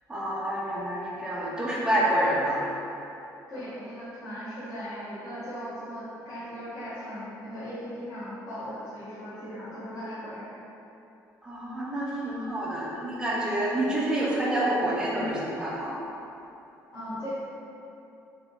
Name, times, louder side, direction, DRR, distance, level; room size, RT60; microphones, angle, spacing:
voice 1, 0.1-2.6 11.4-15.9, right 1 dB, 10° right, -5 dB, 0.6 m, -28 dB
voice 2, 3.5-10.5 16.9-17.3, equal, 45° left, -13 dB, 1.4 m, -38 dB
3.2 x 2.7 x 4.0 m, 2.9 s
cardioid pair, 165°, 7 cm